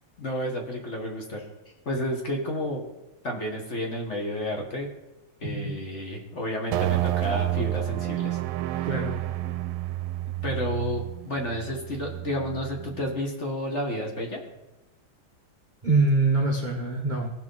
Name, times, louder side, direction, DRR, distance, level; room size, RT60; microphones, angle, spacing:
voice 1, 0.2-1.4 1.8-2.8 3.2-4.9 5.4-8.4 8.7-8.9 10.4-14.4, left 1 dB, 40° left, 1 dB, 1.5 m, -31 dB
sound 1, 6.7-13.2, right 15 dB, 80° right, 1.4 m, -30 dB
voice 2, 8.8-9.1 15.8-17.3, right 3 dB, 40° right, -1 dB, 0.6 m, -24 dB
17.5 x 6.0 x 3.9 m, 1.0 s
omnidirectional pair, 2.3 m